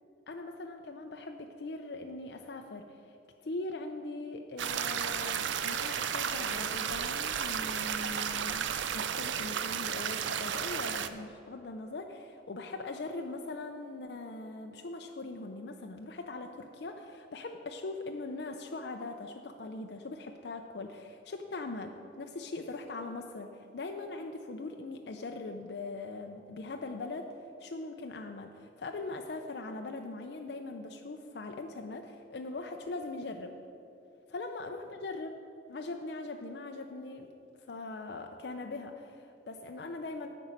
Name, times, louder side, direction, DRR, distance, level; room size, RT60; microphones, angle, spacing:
voice 1, 0.3-3.2 3.4-8.7 8.9-33.6 34.3-35.4 35.7-37.3 37.6-40.3, left 3 dB, 60° left, 4 dB, 0.5 m, -41 dB
sound 1, 4.6-11.1, right 8 dB, 80° right, 0.5 m, -33 dB
9.0 x 5.4 x 7.4 m, 2.8 s
head